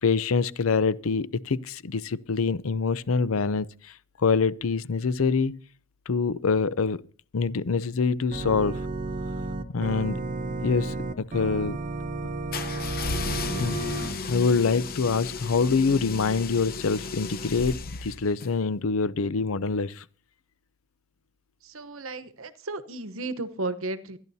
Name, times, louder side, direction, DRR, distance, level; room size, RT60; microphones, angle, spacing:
voice 1, 0.0-5.6 6.1-7.0 7.3-8.8 9.7-10.2 10.6-11.8 13.6-20.0, left 4 dB, 85° left, 0.6 m, -25 dB
Organ, 8.3-14.1, right 2 dB, 40° right, 1.0 m, -32 dB
sound 1, 12.5-18.5, left 4 dB, 45° left, 0.9 m, -34 dB
voice 2, 21.6-24.2, right 2 dB, 75° right, 1.0 m, -34 dB
25.5 x 11.0 x 2.8 m
head